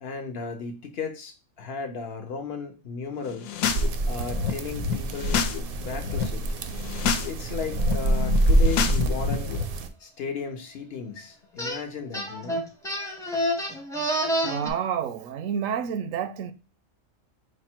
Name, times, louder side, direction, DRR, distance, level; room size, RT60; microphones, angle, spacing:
voice 1, 0.0-3.5 4.1-6.4 7.3-9.5 10.0-12.7, left 5 dB, 60° left, 0.8 m, -35 dB
sound 1, 3.3-3.9 4.1-5.6 5.9-6.2 6.7-7.3 7.6-9.6, left 6 dB, 80° left, 1.0 m, -28 dB
sound 2, 3.7-9.9, right 1 dB, 60° right, 0.6 m, -26 dB
sound 3, 11.6-11.8 12.1-14.7, equal, 5° left, 0.6 m, -28 dB
voice 2, 14.4-16.5, right 8 dB, 85° right, 1.0 m, -29 dB
4.8 x 2.1 x 4.3 m
omnidirectional pair, 1.3 m